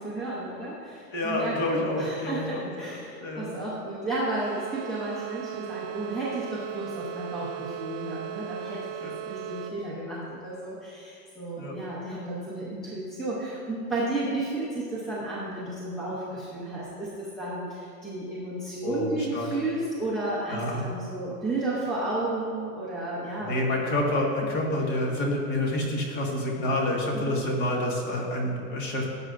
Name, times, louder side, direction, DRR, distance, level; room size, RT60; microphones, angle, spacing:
voice 1, 0.0-23.5 27.3-27.4, right 2 dB, ahead, -9 dB, 0.6 m, -33 dB
voice 2, 1.1-3.5 9.0-9.1 11.6-11.7 18.8-19.5 20.5-20.9 23.4-29.1, left 1 dB, 35° left, -1 dB, 1.7 m, -28 dB
sound 1, 4.4-9.7, right 10 dB, 50° right, 0.8 m, -37 dB
17.0 x 7.8 x 2.5 m, 2.6 s
supercardioid pair, 175°, 45 cm